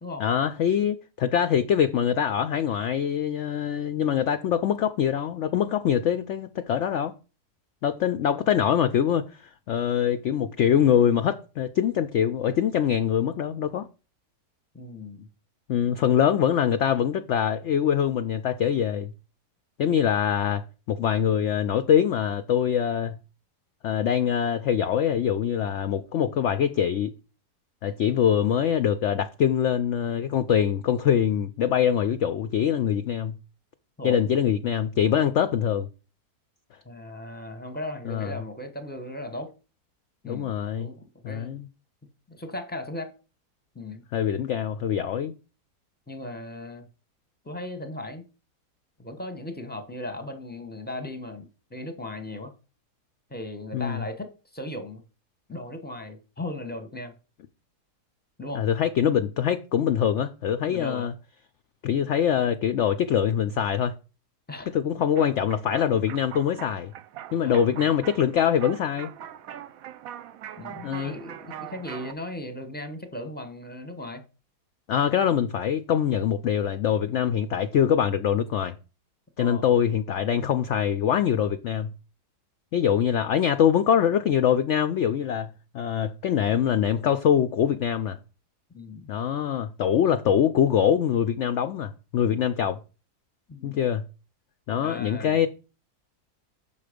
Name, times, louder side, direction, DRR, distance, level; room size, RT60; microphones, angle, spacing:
voice 1, 0.2-7.1 7.8-13.9 15.7-19.1 19.8-23.2 23.8-27.1 27.8-33.4 34.0-35.9 38.1-38.3 40.2-40.9 41.2-41.7 44.1-45.3 53.7-54.0 58.5-61.1 61.8-64.0 64.7-66.9 67.3-69.1 70.8-71.1 74.9-78.7 79.4-81.9 82.7-85.5 85.7-88.2 89.1-92.8 93.6-94.0 94.7-95.5, left 9 dB, 70° left, 0.7 m, -24 dB
voice 2, 14.7-15.3 34.0-34.2 36.8-39.5 40.2-41.5 42.3-43.1 43.7-44.0 46.1-46.8 47.4-48.2 49.0-52.5 53.3-55.0 55.5-57.1 58.4-58.6 60.6-61.1 64.5-64.7 67.3-67.8 70.6-74.2 79.4-79.7 88.7-89.1 93.5-93.8 94.7-95.5, left 1 dB, 10° left, 0.8 m, -37 dB
sound 1, 65.2-72.1, right 10 dB, 70° right, 0.9 m, -42 dB
7.1 x 5.8 x 5.0 m
omnidirectional pair, 1.7 m